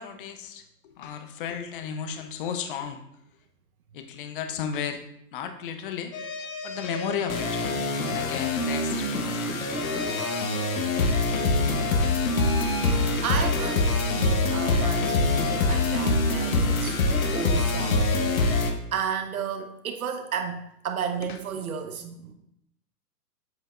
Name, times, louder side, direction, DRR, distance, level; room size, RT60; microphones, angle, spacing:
voice 1, 0.0-3.0 3.9-5.0 5.3-6.1 6.6-7.6 8.1-9.8 21.3-21.7, left 7 dB, 35° left, 8 dB, 0.8 m, -34 dB
sound 1, 6.1-18.7, left 2 dB, 55° left, 1.2 m, -25 dB
voice 2, 11.4-11.8 13.2-17.0 17.3-18.1 18.9-22.3, right 7 dB, 60° right, 6 dB, 1.2 m, -33 dB
7.9 x 7.5 x 2.4 m, 0.77 s
figure-of-eight pair, 120°, 49 cm